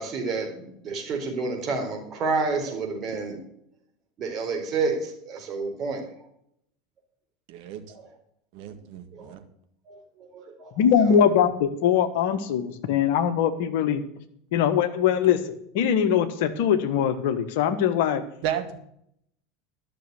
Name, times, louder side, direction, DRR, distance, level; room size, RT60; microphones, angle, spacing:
voice 1, 0.0-3.4 4.2-6.0 7.9-8.1 9.1-9.3 9.9-11.2, right 4 dB, 40° right, 2 dB, 4.1 m, -30 dB
voice 2, 7.5-7.8 8.5-9.4 18.4-18.8, right 10 dB, 55° right, 7 dB, 1.7 m, -32 dB
voice 3, 10.8-14.0 14.5-15.4 15.7-18.2, left 8 dB, 60° left, 9 dB, 1.4 m, -22 dB
12.5 x 6.6 x 8.3 m, 0.71 s
figure-of-eight pair, 80°, 0 cm